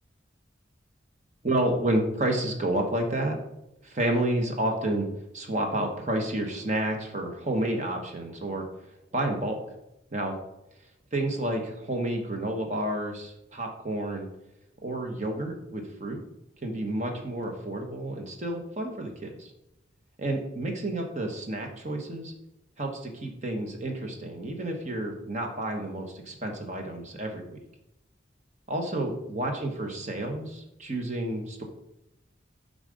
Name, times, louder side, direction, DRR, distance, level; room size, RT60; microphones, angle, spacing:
voice 1, 1.4-3.4 3.8-5.1 5.3-8.6 9.1-9.6 10.1-10.4 11.1-14.3 14.8-16.2 16.6-19.5 20.2-22.3 22.8-27.6 28.7-31.6, right 1 dB, 40° right, 3 dB, 1.0 m, -30 dB
7.1 x 3.8 x 5.1 m, 0.86 s
head